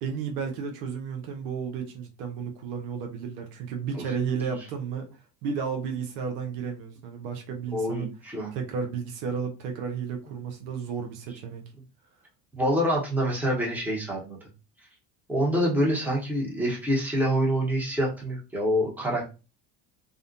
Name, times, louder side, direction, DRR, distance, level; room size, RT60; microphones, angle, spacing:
voice 1, 0.0-5.1 5.4-8.1 8.5-11.6, right 6 dB, 65° right, 0.7 m, -32 dB
voice 2, 7.7-8.5 12.5-14.4 15.3-19.2, equal, 5° right, 1.0 m, -26 dB
2.4 x 2.1 x 2.5 m
hypercardioid pair, 75°, 47 cm